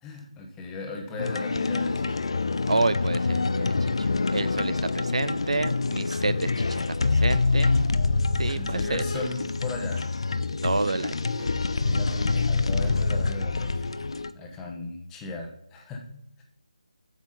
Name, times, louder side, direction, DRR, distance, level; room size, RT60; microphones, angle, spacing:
voice 1, 0.0-2.3 8.5-10.1 11.8-16.4, left 2 dB, 10° left, 2 dB, 1.1 m, -38 dB
sound 1, 1.2-14.3, left 3 dB, 50° left, 0.5 m, -26 dB
voice 2, 2.7-7.7 8.4-9.0 10.6-11.1, right 3 dB, 60° right, 14 dB, 0.5 m, -29 dB
sound 2, 7.4-13.1, right 2 dB, 20° right, 1.8 m, -48 dB
8.1 x 7.2 x 4.2 m, 0.74 s
figure-of-eight pair, 155°, 4 cm